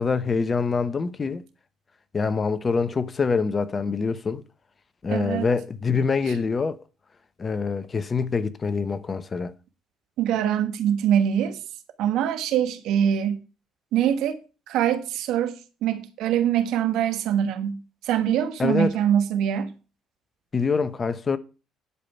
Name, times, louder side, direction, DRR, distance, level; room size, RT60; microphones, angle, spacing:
voice 1, 0.0-1.4 2.1-4.4 5.0-6.8 7.4-9.5 18.6-19.0 20.5-21.4, left 5 dB, 35° left, 1.0 m, -25 dB
voice 2, 5.1-5.5 10.2-11.6 12.0-13.4 13.9-14.4 14.7-17.8 18.0-19.7, right 9 dB, 70° right, 1.3 m, -23 dB
11.5 x 5.1 x 5.7 m
hypercardioid pair, 60°, 0 cm